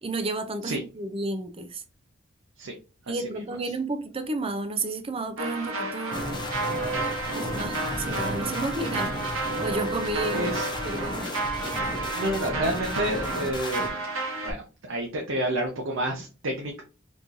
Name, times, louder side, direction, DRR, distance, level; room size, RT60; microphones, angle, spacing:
voice 1, 0.0-1.8 3.1-6.5 7.3-9.2 9.6-10.5 10.8-11.3, right 2 dB, 30° right, 0.5 m, -32 dB
voice 2, 3.1-3.4 10.3-10.7 12.1-14.0 14.4-16.8, right 1 dB, 65° right, 0.7 m, -30 dB
sound 1, 5.4-14.5, right 2 dB, 85° right, 1.1 m, -32 dB
sound 2, 6.1-13.9, equal, 20° left, 0.7 m, -33 dB
3.8 x 3.0 x 2.5 m
head